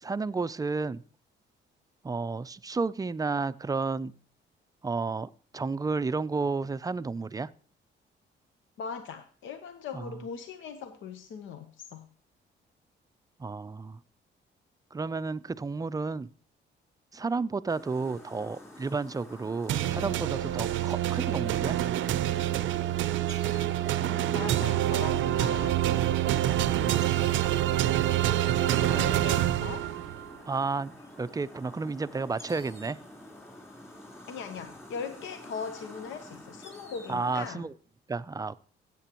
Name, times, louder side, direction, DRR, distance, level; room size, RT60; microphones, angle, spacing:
voice 1, 0.0-1.0 2.0-4.1 4.8-7.5 9.9-10.1 13.4-14.0 14.9-16.3 17.1-21.8 28.8-29.2 30.5-30.9 31.2-33.0 37.1-37.7 38.1-38.6, right 4 dB, 20° right, 15 dB, 0.4 m, -32 dB
voice 2, 8.8-12.1 24.0-25.8 26.5-26.9 28.3-29.9 34.3-37.6, left 6 dB, 75° left, 8 dB, 0.9 m, -40 dB
sound 1, 17.7-37.5, left 1 dB, 10° left, 3.7 m, -49 dB
sound 2, 19.7-30.3, right 13 dB, 75° right, 0.5 m, -26 dB
15.0 x 8.5 x 3.0 m, 0.43 s
cardioid pair, 90°, 20 cm